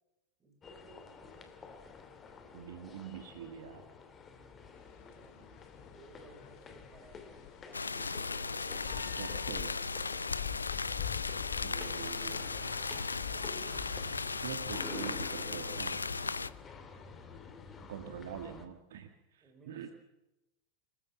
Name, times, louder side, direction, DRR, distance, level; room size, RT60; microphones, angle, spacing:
voice 1, 0.4-1.6 4.3-8.0 9.3-9.9 19.2-19.9, right 3 dB, 20° right, 5 dB, 5.4 m, -59 dB
sound 1, 0.6-18.7, left 5 dB, 20° left, 2.7 m, -50 dB
voice 2, 2.5-3.9 9.0-9.7 11.6-12.5 14.4-16.1 17.9-19.9, right 9 dB, 60° right, 7 dB, 1.7 m, -45 dB
sound 2, 4.8-15.8, left 14 dB, 45° left, 0.8 m, -47 dB
sound 3, 7.7-16.5, left 4 dB, 75° left, 0.7 m, -36 dB
25.5 x 15.0 x 7.5 m, 0.93 s
figure-of-eight pair, 90°, 0 cm